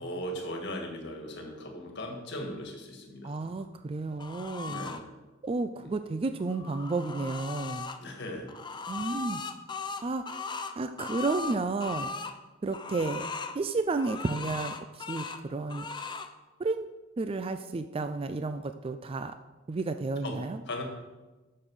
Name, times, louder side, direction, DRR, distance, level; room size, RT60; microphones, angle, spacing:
voice 1, 0.0-3.5 4.7-5.1 5.8-5.9 8.0-8.5 20.2-20.4 20.7-20.8, left 1 dB, 55° left, 2 dB, 1.8 m, -38 dB
voice 2, 3.2-4.9 5.4-7.9 8.9-9.4 10.0-10.4 10.8-12.1 12.6-13.2 13.5-15.9 16.6-16.9 17.2-19.4 19.7-20.6, right 3 dB, 25° right, 9 dB, 0.3 m, -32 dB
sound 1, 4.2-5.0 6.4-8.0 8.5-12.3 12.7-13.6 14.0-15.4 15.7-16.3, left 4 dB, 20° left, 0.5 m, -38 dB
8.8 x 6.6 x 6.3 m, 1.2 s
head